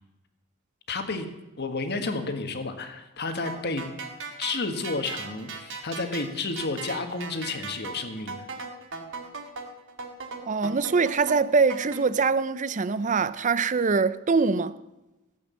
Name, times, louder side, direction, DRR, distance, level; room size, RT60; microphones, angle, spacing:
voice 1, 0.9-1.3 1.6-3.8 4.4-8.4, left 3 dB, 50° left, 1.6 m, -31 dB
sound 1, 3.5-12.0, right 4 dB, 60° right, 2.0 m, -38 dB
voice 2, 10.4-14.8, right 4 dB, 35° right, 0.5 m, -23 dB
16.5 x 8.5 x 7.0 m
head